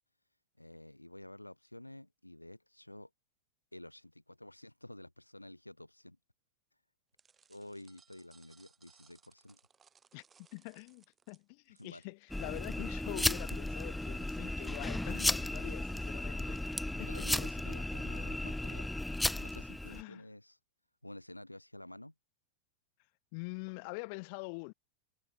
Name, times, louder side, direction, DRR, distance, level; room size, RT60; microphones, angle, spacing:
voice 1, 0.6-3.1 3.7-6.2 7.5-9.6 11.7-12.1 16.9-18.9 19.3-20.6 21.0-22.1, left 1 dB, 85° left, 1.6 m, -51 dB
sound 1, 7.2-13.2, right 6 dB, 20° right, 3.0 m, -66 dB
voice 2, 10.5-16.7 17.0-17.3 19.9-20.3 23.3-24.7, left 35 dB, 45° left, 2.9 m, -45 dB
sound 2, 12.3-20.0, left 1 dB, 5° left, 0.8 m, -35 dB
figure-of-eight pair, 90°, 0 cm